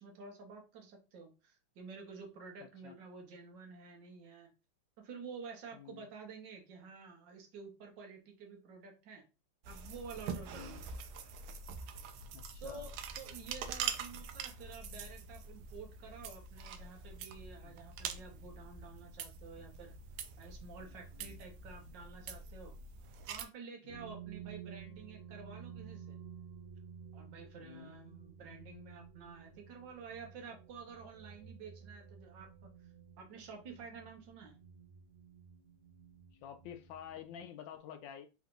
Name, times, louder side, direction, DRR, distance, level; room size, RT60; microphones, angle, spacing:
voice 1, 0.0-4.5 5.0-9.2 9.7-10.8 12.6-19.9 20.4-22.7 23.3-26.2 27.1-32.5 33.2-34.5, right 5 dB, 60° right, 1.7 m, -50 dB
sound 1, 9.6-23.5, right 6 dB, 80° right, 1.5 m, -45 dB
voice 2, 12.3-12.8 17.6-17.7 21.2-21.4 23.9-24.1 27.6-27.9 36.4-38.3, left 9 dB, 75° left, 1.2 m, -49 dB
sound 2, 23.9-37.5, right 7 dB, 45° right, 1.2 m, -53 dB
3.8 x 3.6 x 3.7 m
omnidirectional pair, 2.3 m